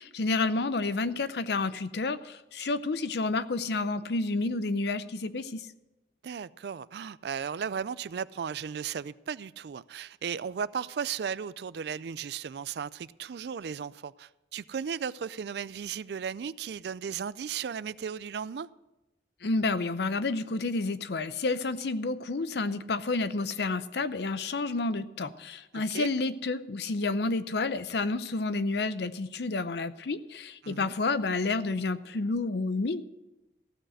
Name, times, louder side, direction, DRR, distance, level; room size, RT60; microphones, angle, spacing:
voice 1, 0.0-5.6 19.4-33.0, left 3 dB, 70° left, 0.6 m, -30 dB
voice 2, 6.2-18.7 25.7-26.1 30.6-30.9, right 7 dB, 70° right, 0.3 m, -35 dB
15.0 x 6.5 x 7.8 m
head